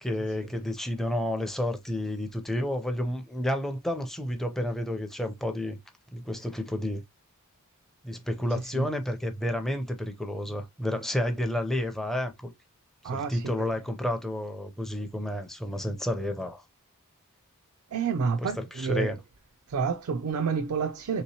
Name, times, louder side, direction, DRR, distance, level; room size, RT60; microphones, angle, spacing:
voice 1, 0.0-5.8 6.1-7.0 8.0-12.5 13.0-16.6 18.4-19.2, left 1 dB, ahead, 0.4 m, -30 dB
voice 2, 13.0-13.5 17.9-19.1 19.7-21.2, right 5 dB, 75° right, 0.4 m, -29 dB
3.4 x 2.9 x 2.7 m
head